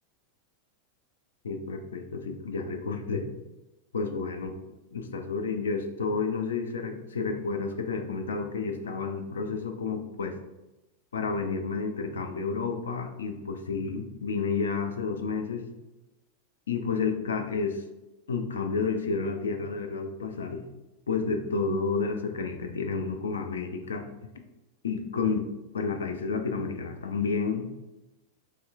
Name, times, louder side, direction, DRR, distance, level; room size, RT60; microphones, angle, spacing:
voice 1, 1.4-3.3 3.9-4.6 4.9-10.4 11.1-15.7 16.7-17.8 18.3-20.6 21.1-24.1 24.8-25.5 25.7-27.8, left 4 dB, 65° left, 6 dB, 0.4 m, -30 dB
4.3 x 3.2 x 2.3 m, 1.0 s
figure-of-eight pair, 90°, 0 cm